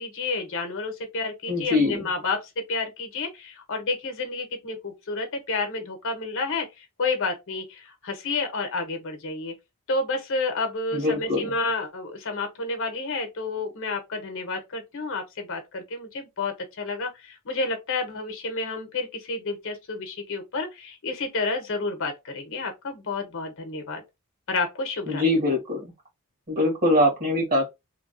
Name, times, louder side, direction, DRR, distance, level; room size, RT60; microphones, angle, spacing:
voice 1, 0.0-2.4 2.7-9.5 9.9-24.0 24.5-25.2, left 3 dB, 60° left, 0.8 m, -30 dB
voice 2, 1.5-2.1 10.9-11.5 25.1-25.9 26.5-27.7, left 1 dB, 40° right, 1.4 m, -23 dB
3.0 x 2.3 x 2.5 m
head